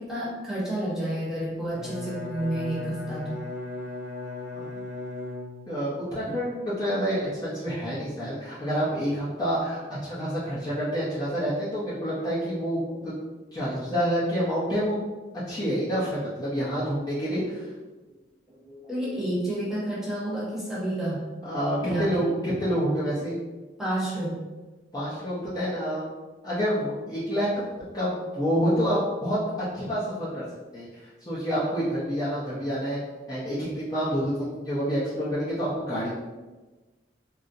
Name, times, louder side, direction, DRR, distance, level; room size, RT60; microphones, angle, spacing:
voice 1, 0.0-3.4 18.6-21.2 21.8-22.3 23.8-24.4, right 1 dB, ahead, -8 dB, 0.9 m, -30 dB
Bowed string instrument, 1.6-5.9, left 3 dB, 85° left, 0.7 m, -37 dB
voice 2, 5.7-13.1 13.5-15.0 15.5-17.7 21.4-23.4 24.9-26.1 26.4-27.6 27.9-29.4 29.7-30.4 30.7-33.0 33.3-36.1, equal, 20° left, -10 dB, 0.6 m, -28 dB
3.7 x 2.0 x 2.6 m, 1.2 s
head